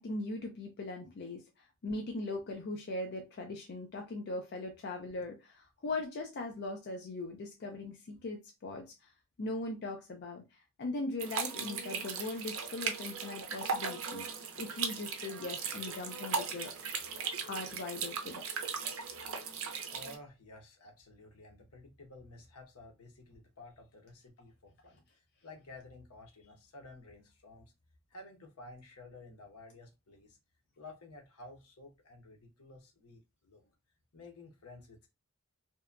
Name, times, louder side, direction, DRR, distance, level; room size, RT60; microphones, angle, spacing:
voice 1, 0.0-1.4 1.8-9.1 9.4-10.4 10.8-14.3 14.6-16.7 17.4-18.4, left 2 dB, 50° left, 0.4 m, -40 dB
sound 1, 11.2-20.2, right 5 dB, 65° right, 0.5 m, -38 dB
voice 2, 19.9-25.0 25.4-27.6 28.1-30.4 30.8-33.6 34.1-35.1, left 2 dB, 80° left, 0.8 m, -53 dB
2.8 x 2.1 x 2.4 m
head